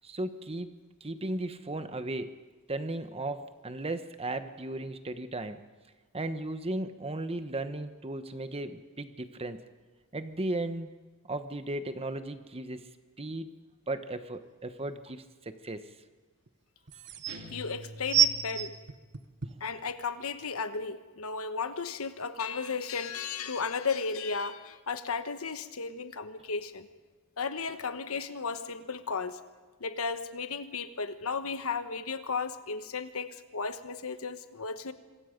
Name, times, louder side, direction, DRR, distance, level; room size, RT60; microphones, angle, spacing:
voice 1, 0.0-0.7 1.0-2.4 2.7-5.6 6.1-9.6 10.1-10.9 11.3-12.9 13.2-13.5 13.9-15.9, right 2 dB, 25° right, 10 dB, 1.1 m, -36 dB
sound 1, 14.8-14.9 16.5-16.6 16.9-17.4 18.1-19.7 20.4-20.5, right 8 dB, 50° right, 1.2 m, -27 dB
sound 2, 17.3-19.0, equal, 70° right, 3.2 m, -46 dB
voice 2, 17.5-18.7 19.6-26.9 27.4-29.4 29.8-34.9, left 5 dB, 65° left, 10 dB, 1.2 m, -34 dB
26.0 x 22.5 x 5.2 m, 1.3 s
head